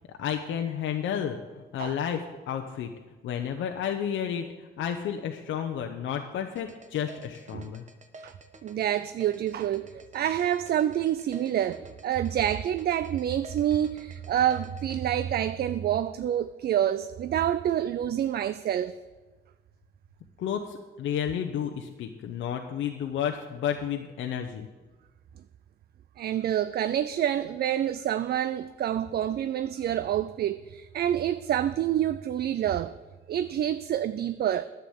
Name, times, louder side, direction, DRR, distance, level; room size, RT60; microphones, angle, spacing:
voice 1, 0.1-2.9 3.2-7.8 20.4-24.7, left 8 dB, 75° left, 0.8 m, -31 dB
sound 1, 6.6-15.0, right 2 dB, 35° right, 1.1 m, -49 dB
voice 2, 8.6-18.9 26.2-32.9 33.3-34.6, right 10 dB, 55° right, 0.4 m, -27 dB
10.5 x 7.1 x 8.0 m
cardioid pair, 90°, 20 cm